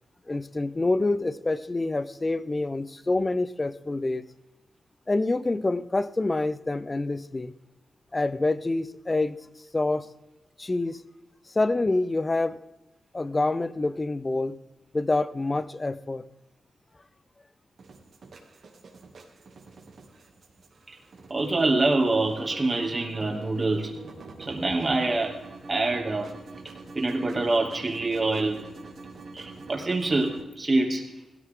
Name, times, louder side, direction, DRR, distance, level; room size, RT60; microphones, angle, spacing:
voice 1, 0.3-4.2 5.1-7.5 8.1-9.4 9.7-10.1 10.6-11.0 11.6-12.6 13.1-14.5 14.9-16.2, left 2 dB, 25° left, 16 dB, 0.7 m, -26 dB
sound 1, 17.8-30.4, right 3 dB, 65° right, 2.5 m, -45 dB
voice 2, 21.3-23.9 24.5-25.4 25.7-26.3 26.9-28.6 29.3-31.1, right 2 dB, 30° right, 2 dB, 2.6 m, -25 dB
16.5 x 14.0 x 3.8 m, 1.0 s
cardioid pair, 75°, 0 cm